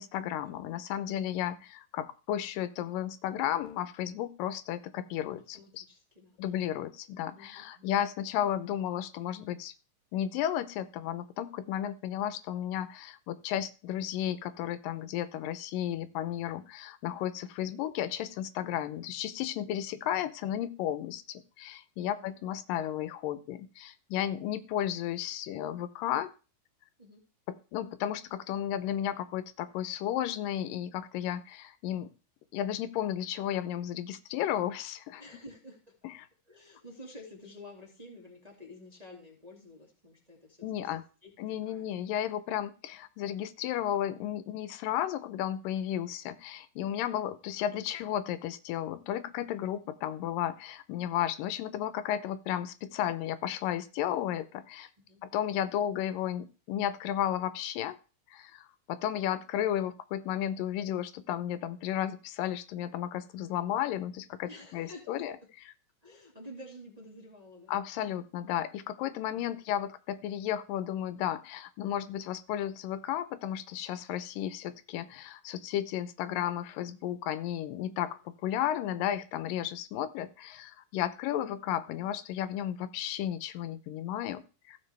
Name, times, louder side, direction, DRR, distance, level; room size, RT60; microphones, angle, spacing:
voice 1, 0.0-5.8 6.4-9.7 10.1-26.3 27.5-32.1 32.5-35.2 36.0-36.1 40.6-41.0 41.4-54.9 55.2-58.0 58.3-65.4 67.7-84.8, left 11 dB, 90° left, 13 dB, 2.4 m, -33 dB
voice 2, 1.1-1.6 5.5-6.9 7.3-8.0 22.0-22.4 27.0-27.2 35.1-35.9 36.5-40.9 41.2-41.3 41.6-41.9 42.2-42.3 49.8-49.9 55.1-55.2 64.4-65.2 66.0-67.7 69.3-69.4 78.0-78.2, left 1 dB, 15° right, -1 dB, 1.4 m, -50 dB
15.0 x 7.2 x 3.4 m, 0.34 s
omnidirectional pair, 3.9 m